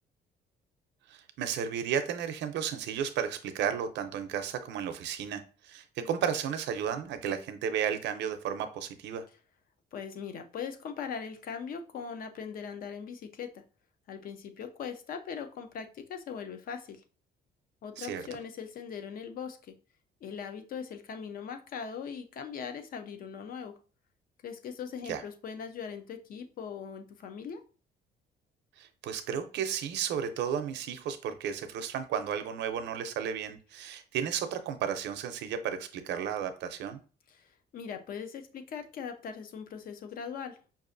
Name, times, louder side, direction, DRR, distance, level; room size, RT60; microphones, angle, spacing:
voice 1, 1.1-9.2 18.0-18.2 25.1-25.2 28.8-37.0, right 8 dB, 80° right, 9 dB, 0.6 m, -33 dB
voice 2, 9.9-13.6 14.1-17.0 17.8-19.7 20.2-23.7 24.4-27.6 37.3-37.5 37.7-40.6, left 6 dB, 55° left, 7 dB, 0.6 m, -40 dB
5.4 x 2.5 x 2.5 m, 0.37 s
cardioid pair, 150°, 18 cm